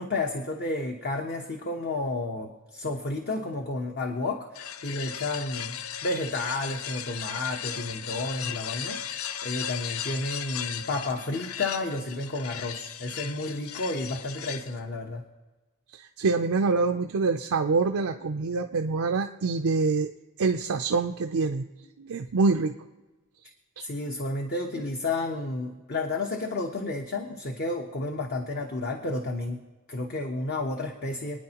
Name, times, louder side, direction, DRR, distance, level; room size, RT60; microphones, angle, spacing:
voice 1, 0.0-15.2 23.8-29.6 29.9-31.4, left 2 dB, 50° left, 3 dB, 1.0 m, -31 dB
sound 1, 4.5-14.8, left 9 dB, 80° left, 0.5 m, -36 dB
voice 2, 15.9-20.1 20.4-21.7 22.0-22.7 23.8-23.9, right 4 dB, 80° right, 5 dB, 0.5 m, -25 dB
27.0 x 9.7 x 2.9 m, 1.2 s
head